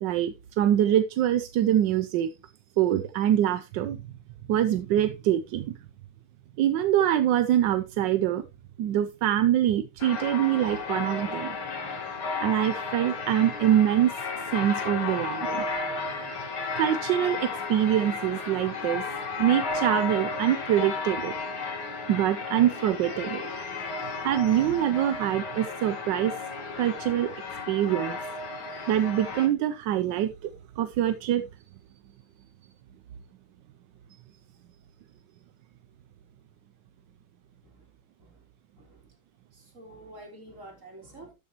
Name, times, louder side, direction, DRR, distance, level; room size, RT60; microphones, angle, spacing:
voice 1, 0.0-2.3 2.8-4.0 4.5-5.8 6.6-8.5 8.8-11.6 12.4-14.1 14.5-15.6 16.4-19.1 19.4-21.3 22.1-23.4 24.2-26.4 26.8-27.3 27.7-28.2 28.9-30.5 30.8-31.4, right 11 dB, 70° right, 1.1 m, -24 dB
sound 1, 10.0-29.5, left 4 dB, 70° left, 3.1 m, -33 dB
voice 2, 39.5-41.3, right 1 dB, 35° right, 4.0 m, -48 dB
12.5 x 8.3 x 2.9 m
omnidirectional pair, 2.3 m